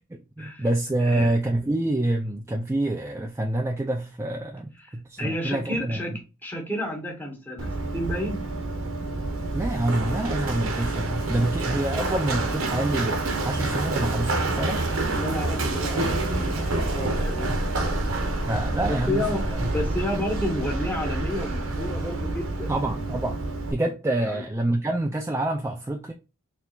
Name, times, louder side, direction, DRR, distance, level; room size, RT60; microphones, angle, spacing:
voice 1, 0.1-6.0 9.5-13.2 13.4-14.8 18.5-19.3 19.6-19.7 22.7-23.4 23.7-26.1, right 1 dB, 10° right, 0.3 m, -27 dB
voice 2, 1.1-1.4 4.8-8.4 11.8-12.0 15.1-17.5 17.8-18.1 18.9-22.7 24.2-24.4, left 1 dB, 10° left, 1.2 m, -31 dB
Run, 7.6-23.7, right 2 dB, 70° right, 0.9 m, -28 dB
4.5 x 3.3 x 2.4 m
head